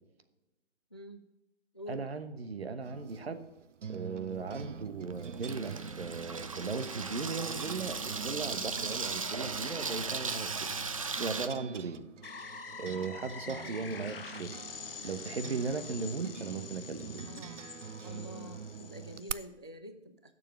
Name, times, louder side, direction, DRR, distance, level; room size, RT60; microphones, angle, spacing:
voice 1, 0.9-1.2 1.7-2.0 13.6-14.2 17.3-17.7 18.0-20.3, equal, 25° left, 9 dB, 0.4 m, -47 dB
voice 2, 1.9-3.4 3.9-10.7 11.2-12.0 12.8-14.6 15.0-17.3, right 4 dB, 60° right, 10 dB, 1.1 m, -37 dB
sound 1, 2.9-19.3, right 6 dB, 85° right, 0.5 m, -45 dB
Water tap faucet / Sink (filling or washing), 4.3-11.5, right 4 dB, 30° right, 0.5 m, -37 dB
sound 2, 12.2-19.5, left 5 dB, 50° left, 0.9 m, -46 dB
10.0 x 6.8 x 6.6 m, 0.98 s
figure-of-eight pair, 140°, 35 cm